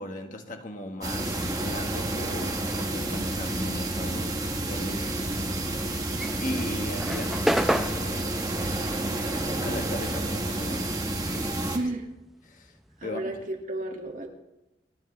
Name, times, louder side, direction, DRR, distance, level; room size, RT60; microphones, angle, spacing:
voice 1, 0.0-5.8 6.4-9.0 9.3-11.0 11.3-11.7 12.4-13.4, left 1 dB, 45° left, 4 dB, 1.5 m, -38 dB
sound 1, 1.0-11.8, right 1 dB, 20° right, 1.4 m, -30 dB
sound 2, 6.0-10.8 11.0-13.0, equal, ahead, 0.5 m, -31 dB
voice 2, 11.7-12.1 13.0-14.3, right 1 dB, 45° right, 1 dB, 2.1 m, -32 dB
28.5 x 10.5 x 3.3 m, 0.93 s
head